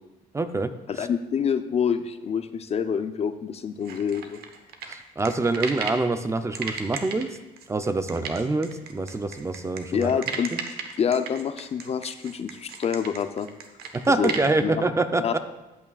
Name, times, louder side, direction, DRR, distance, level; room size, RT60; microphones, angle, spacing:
voice 1, 0.3-0.7 1.0-1.1 4.9-7.4 7.7-10.2 10.5-10.6 13.9-15.4, right 2 dB, 15° right, 10 dB, 0.5 m, -26 dB
voice 2, 0.9-4.4 9.9-10.5 11.0-13.5 14.2-14.3 14.6-14.8 15.2-15.4, left 7 dB, 40° left, 10 dB, 0.5 m, -27 dB
sound 1, 3.8-6.1 6.5-14.5, right 6 dB, 70° right, 1.1 m, -35 dB
14.0 x 8.5 x 2.3 m, 1.0 s
cardioid pair, 110°, 17 cm